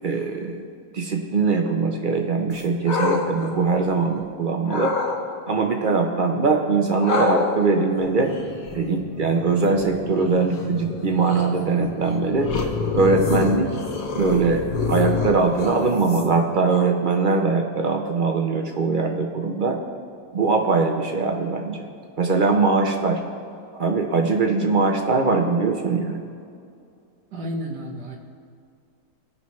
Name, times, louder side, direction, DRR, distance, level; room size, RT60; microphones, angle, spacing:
voice 1, 0.0-0.7 0.9-4.9 5.5-8.3 8.7-12.5 12.9-13.7 14.1-19.8 20.3-21.8 22.2-23.2 23.8-26.2, right 4 dB, 65° right, 3 dB, 0.5 m, -21 dB
sound 1, 2.5-4.2 4.6-5.2 7.0-16.5, left 4 dB, 60° left, 1.5 m, -28 dB
voice 2, 27.3-28.2, equal, 90° right, 0 dB, 1.8 m, -31 dB
16.5 x 5.6 x 3.1 m, 2.4 s
omnidirectional pair, 1.7 m